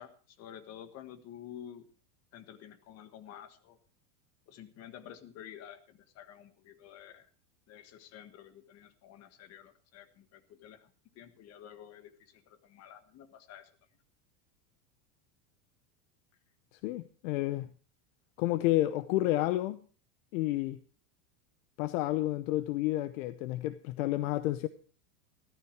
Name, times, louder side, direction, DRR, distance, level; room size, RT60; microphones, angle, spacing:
voice 1, 0.0-1.9 2.3-3.8 4.5-7.3 7.7-13.7, left 10 dB, 30° left, 1.5 m, -50 dB
voice 2, 16.8-17.7 18.4-19.8 20.3-20.8 21.8-24.7, left 16 dB, 55° left, 0.8 m, -30 dB
14.5 x 13.0 x 4.7 m
supercardioid pair, 155°, 47 cm